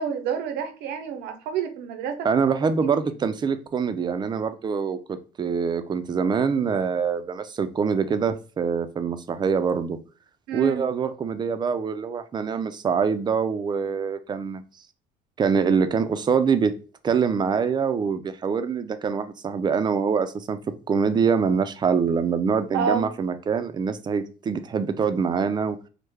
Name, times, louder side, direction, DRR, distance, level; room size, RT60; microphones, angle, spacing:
voice 1, 0.0-2.5 10.5-10.8 22.7-23.1, right 7 dB, 90° right, 0.6 m, -28 dB
voice 2, 2.2-10.0 10.5-14.6 15.4-16.7 17.0-20.6 20.9-25.8, right 6 dB, 25° right, 0.3 m, -24 dB
3.2 x 2.1 x 3.4 m
cardioid pair, 110°, 17 cm